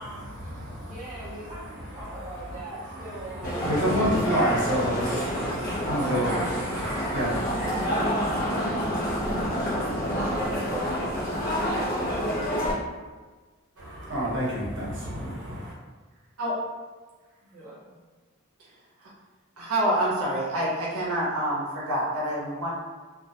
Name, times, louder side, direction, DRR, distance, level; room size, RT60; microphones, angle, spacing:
voice 1, 0.0-9.5 13.8-15.7, equal, 60° right, 0.9 m, -30 dB
voice 2, 0.9-3.5 5.2-5.7 7.2-8.3 9.2-9.6 10.2-12.6 17.5-18.0, right 2 dB, 35° right, 0.5 m, -41 dB
sound 1, 3.4-12.7, equal, 40° left, 0.5 m, -28 dB
voice 3, 19.6-22.7, right 1 dB, 85° right, 0.6 m, -27 dB
2.3 x 2.1 x 2.7 m
head